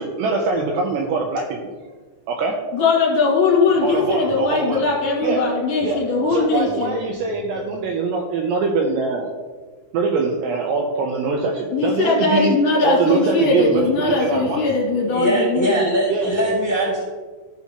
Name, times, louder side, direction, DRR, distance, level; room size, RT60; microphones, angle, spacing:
voice 1, 0.0-1.7 2.3-2.6 3.8-4.8 5.2-5.5 5.8-6.0 6.3-9.3 9.9-12.5 12.8-14.6 16.1-16.3, right 4 dB, 80° right, 1 dB, 2.5 m, -23 dB
voice 2, 2.7-6.9 11.7-15.8, left 4 dB, 55° left, -5 dB, 3.1 m, -20 dB
voice 3, 15.0-17.0, right 1 dB, 10° left, -4 dB, 1.3 m, -21 dB
15.0 x 5.9 x 2.8 m, 1.4 s
omnidirectional pair, 5.6 m